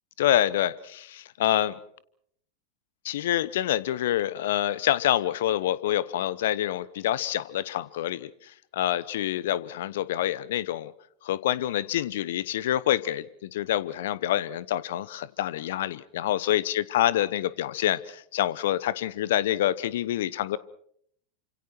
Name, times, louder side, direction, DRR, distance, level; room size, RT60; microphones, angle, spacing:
voice 1, 0.2-1.8 3.0-8.3 8.7-10.9 11.2-20.6, left 12 dB, 60° left, 19 dB, 1.0 m, -27 dB
29.0 x 26.5 x 4.5 m, 0.65 s
figure-of-eight pair, 85°, 0 cm